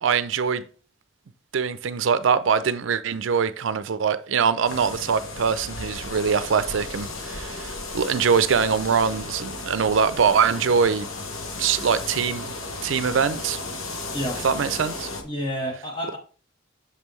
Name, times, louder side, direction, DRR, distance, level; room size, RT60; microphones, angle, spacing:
voice 1, 0.0-0.6 1.5-11.1 11.6-12.5 12.8-13.6 14.4-15.1, right 6 dB, 70° right, 0.5 m, -23 dB
sound 1, 4.7-15.2, left 3 dB, 85° left, 1.1 m, -34 dB
voice 2, 15.2-16.2, equal, 25° left, 1.7 m, -29 dB
6.7 x 5.4 x 3.1 m
head